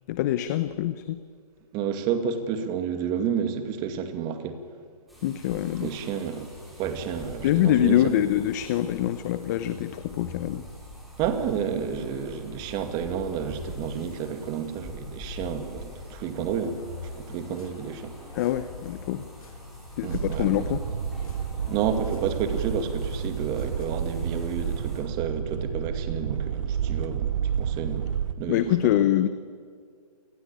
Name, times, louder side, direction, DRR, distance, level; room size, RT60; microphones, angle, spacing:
voice 1, 0.1-1.2 5.2-5.9 7.4-10.6 18.3-19.3 20.0-20.8 28.5-29.3, left 12 dB, 25° left, 12 dB, 0.9 m, -24 dB
voice 2, 1.7-4.6 5.8-6.5 6.8-8.0 11.2-16.8 17.1-18.1 20.0-20.5 21.7-28.9, right 7 dB, 20° right, 7 dB, 2.2 m, -30 dB
sound 1, 5.1-25.0, left 1 dB, ahead, 6.7 m, -44 dB
sound 2, 16.5-23.8, left 4 dB, 65° left, 7.2 m, -45 dB
sound 3, 20.1-28.3, right 8 dB, 50° right, 1.5 m, -30 dB
28.5 x 20.0 x 8.9 m, 2.1 s
hypercardioid pair, 155°, 20 cm